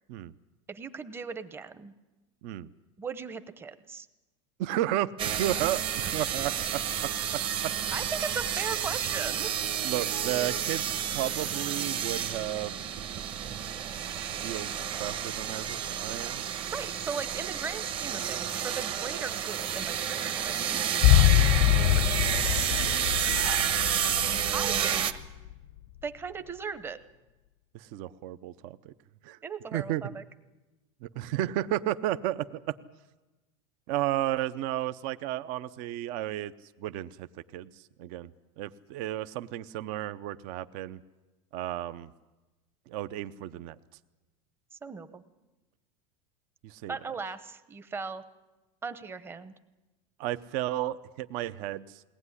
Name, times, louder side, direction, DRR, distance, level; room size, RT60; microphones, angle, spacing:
voice 1, 0.7-1.9 3.0-4.1 7.9-9.5 16.7-21.3 21.9-23.8 24.5-25.1 26.0-27.0 29.4-30.2 44.7-45.2 46.9-48.2 48.8-49.5, right 5 dB, 15° right, 11 dB, 0.9 m, -38 dB
voice 2, 4.6-7.8 9.8-12.8 14.4-16.4 23.3-23.4 27.7-28.9 29.2-29.4 29.7-30.0 31.0-32.7 33.9-36.5 36.8-37.3 37.5-37.7 38.0-38.3 38.6-41.0 41.5-42.1 42.9-43.8 46.6-47.0 50.2-52.0, right 13 dB, 50° right, 13 dB, 0.7 m, -33 dB
sound 1, 5.2-25.1, right 9 dB, 30° right, 1.1 m, -30 dB
sound 2, 21.0-25.3 25.5-25.6, left 15 dB, 60° left, 0.7 m, -24 dB
21.0 x 18.5 x 9.8 m, 1.1 s
supercardioid pair, 155°, 17 cm